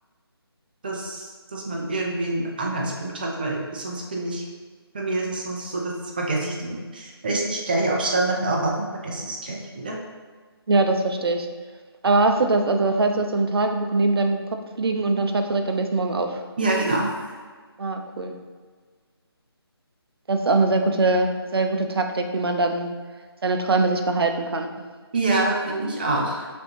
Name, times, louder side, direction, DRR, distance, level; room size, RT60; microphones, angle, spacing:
voice 1, 0.8-4.4 4.9-10.0 16.6-17.3 25.1-26.5, right 2 dB, 20° right, -1 dB, 0.5 m, -26 dB
voice 2, 10.7-11.5 12.0-14.4 14.8-16.4 17.8-18.3 20.3-22.9 23.4-24.8, right 3 dB, 65° right, 5 dB, 0.6 m, -22 dB
6.1 x 2.7 x 2.9 m, 1.5 s
figure-of-eight pair, 165°, 14 cm